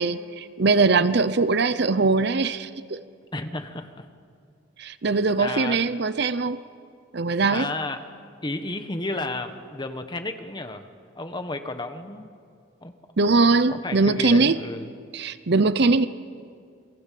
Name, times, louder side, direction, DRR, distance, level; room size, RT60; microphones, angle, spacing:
voice 1, 0.0-3.0 4.8-6.6 7.1-7.7 13.2-14.6 15.1-16.1, right 3 dB, 55° right, 14 dB, 0.7 m, -21 dB
voice 2, 3.3-4.0 5.4-5.8 7.5-8.0 8.4-10.9 11.1-12.3 12.8-12.9 13.7-14.9, left 2 dB, 20° left, 7 dB, 1.4 m, -32 dB
28.5 x 23.0 x 7.7 m, 2.3 s
head